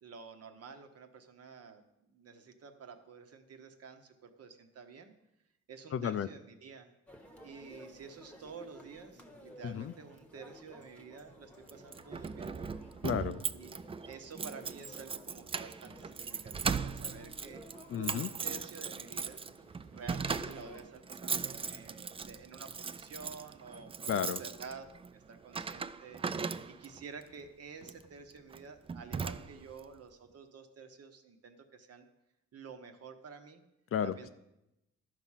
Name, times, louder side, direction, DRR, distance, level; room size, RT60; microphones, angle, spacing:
voice 1, 0.0-5.1 5.7-6.9 7.4-12.7 13.5-17.6 17.9-24.8 25.1-32.1 32.5-33.6 34.0-34.3, right 5 dB, 55° right, 7 dB, 1.2 m, -50 dB
voice 2, 5.9-6.3 9.6-9.9 13.0-13.4 17.9-18.3 24.1-24.4 33.9-34.1, left 8 dB, 45° left, 13 dB, 0.5 m, -32 dB
sound 1, 7.1-20.8, equal, 5° left, 1.2 m, -55 dB
Keys jangling, 11.7-27.0 27.8-28.1 28.5-28.6 28.9-29.8, right 5 dB, 20° right, 0.3 m, -39 dB
12.0 x 4.8 x 5.7 m, 0.89 s
cardioid pair, 90°, 30 cm